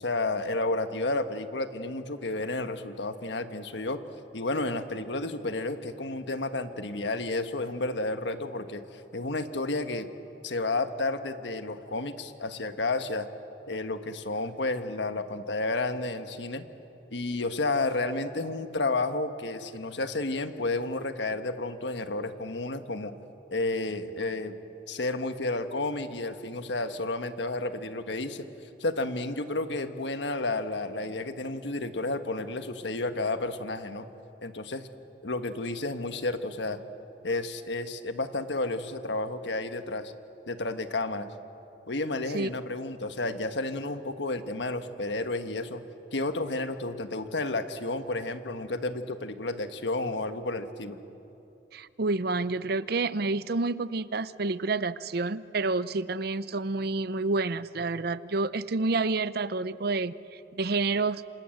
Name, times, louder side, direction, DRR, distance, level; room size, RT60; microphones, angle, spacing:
voice 1, 0.0-4.0 4.3-8.8 9.1-10.1 10.4-13.3 13.7-16.6 17.1-23.1 23.5-24.6 24.9-28.4 28.8-34.1 34.4-34.9 35.2-36.8 37.2-40.1 40.5-41.3 41.9-45.8 46.1-51.0, left 2 dB, 75° left, 9 dB, 1.4 m, -31 dB
voice 2, 51.7-61.3, right 3 dB, 60° right, 16 dB, 0.7 m, -29 dB
27.5 x 27.5 x 7.9 m, 2.9 s
head